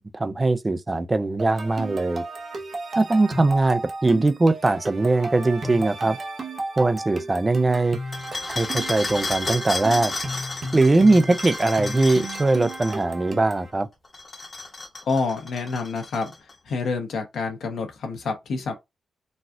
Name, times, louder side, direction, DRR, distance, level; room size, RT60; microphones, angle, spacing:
voice 1, 0.0-2.2 3.0-6.2 6.8-8.0 8.6-10.1 10.7-13.9, right 2 dB, 20° right, 0.3 m, -21 dB
sound 1, 1.4-13.7, right 2 dB, 40° right, 0.7 m, -34 dB
sound 2, 8.1-13.0 14.0-16.5, left 2 dB, 25° left, 0.9 m, -33 dB
voice 2, 15.1-16.3 16.7-18.7, left 4 dB, 75° left, 1.0 m, -27 dB
4.1 x 2.3 x 2.5 m
wide cardioid pair, 140°, 0 cm